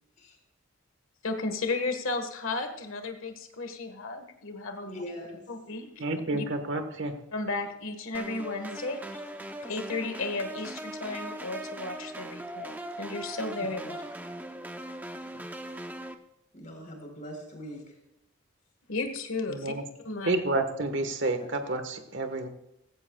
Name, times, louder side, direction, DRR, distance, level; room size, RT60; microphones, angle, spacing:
voice 1, 1.2-5.0 5.5-5.9 6.3-6.4 7.3-9.0 9.7-14.0 18.9-19.7 20.0-20.3, left 3 dB, 85° left, 7 dB, 1.5 m, -34 dB
voice 2, 4.8-5.4 16.5-18.0, equal, 40° left, 2 dB, 4.0 m, -41 dB
voice 3, 6.0-7.1 19.5-19.8 20.2-22.5, right 2 dB, 60° right, 7 dB, 1.5 m, -30 dB
sound 1, 8.1-16.1, right 1 dB, 10° right, 0.7 m, -40 dB
16.5 x 15.5 x 2.4 m, 0.88 s
head